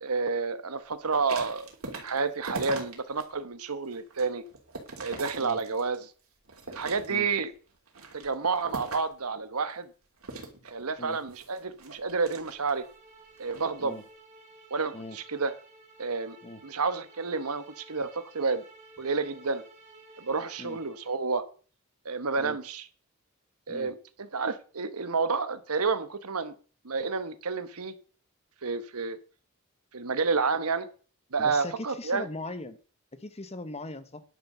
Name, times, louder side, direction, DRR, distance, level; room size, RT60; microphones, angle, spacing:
voice 1, 0.0-1.7 1.9-4.4 5.0-6.1 6.7-7.5 8.1-9.9 10.6-12.8 13.4-14.0 14.7-15.5 16.0-16.4 16.6-18.6 19.0-19.6 20.2-21.4 22.0-22.9 23.7-26.5 26.8-27.9 28.6-29.2 29.9-30.9 31.3-32.3, right 4 dB, 90° right, 12 dB, 1.2 m, -30 dB
sound 1, 1.0-3.2 3.7-6.0 6.5-7.4 7.9-9.2 10.2-12.9 13.4-13.7, right 3 dB, 70° right, 3.1 m, -41 dB
sound 2, 12.3-21.2, right 3 dB, 35° right, 3.0 m, -54 dB
voice 2, 31.4-32.8 33.1-34.2, left 2 dB, 30° left, 12 dB, 1.0 m, -40 dB
11.0 x 6.5 x 6.7 m, 0.39 s
head